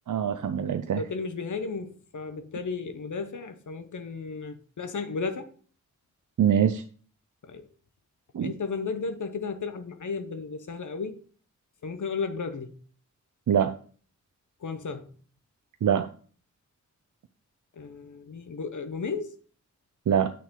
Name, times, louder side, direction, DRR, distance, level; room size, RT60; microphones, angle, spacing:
voice 1, 0.1-1.0 6.4-6.8 8.3-8.5 13.5-13.8 15.8-16.1 20.1-20.3, right 8 dB, 80° right, 0.6 m, -23 dB
voice 2, 1.0-5.5 7.4-7.7 8.4-11.2 11.8-12.8 14.6-15.1 17.7-19.4, left 4 dB, 75° left, 1.0 m, -34 dB
8.6 x 6.2 x 3.8 m
cardioid pair, 55°, 31 cm